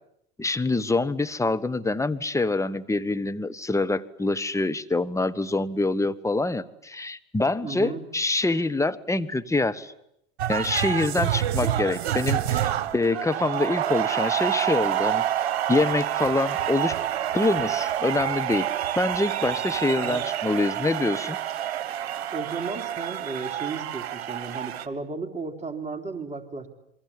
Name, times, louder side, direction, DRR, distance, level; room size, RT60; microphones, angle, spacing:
voice 1, 0.4-9.9 10.5-15.2 15.7-17.0 17.3-18.7 19.0-21.4, left 2 dB, 10° left, 10 dB, 1.2 m, -25 dB
voice 2, 7.6-8.1 19.8-20.3 22.3-26.7, right 4 dB, 20° right, 4 dB, 3.4 m, -34 dB
sound 1, 10.4-24.9, right 11 dB, 70° right, 1.6 m, -28 dB
27.5 x 23.0 x 8.6 m, 0.78 s
hypercardioid pair, 85°, 32 cm